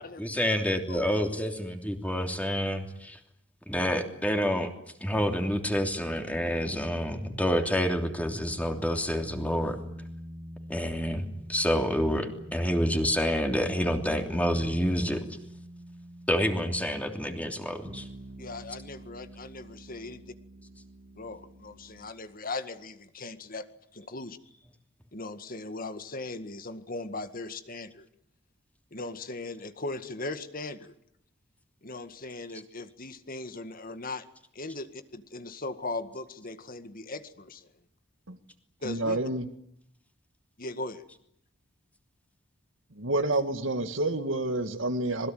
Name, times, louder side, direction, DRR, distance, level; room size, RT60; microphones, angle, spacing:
voice 1, 0.2-3.2 3.7-4.7 5.0-9.8 10.7-15.2 16.3-18.1, equal, 5° left, 4 dB, 3.1 m, -28 dB
sound 1, 5.1-22.1, right 1 dB, 40° right, 2.7 m, -46 dB
voice 2, 18.4-20.2 21.2-23.7 23.9-24.4 25.1-28.1 28.9-30.9 31.8-34.3 34.5-37.7 38.8-39.2 40.6-41.0, left 2 dB, 45° left, 10 dB, 1.9 m, -38 dB
voice 3, 38.8-39.5 43.0-45.3, right 2 dB, 70° right, 7 dB, 2.0 m, -28 dB
26.5 x 21.0 x 9.4 m, 0.72 s
head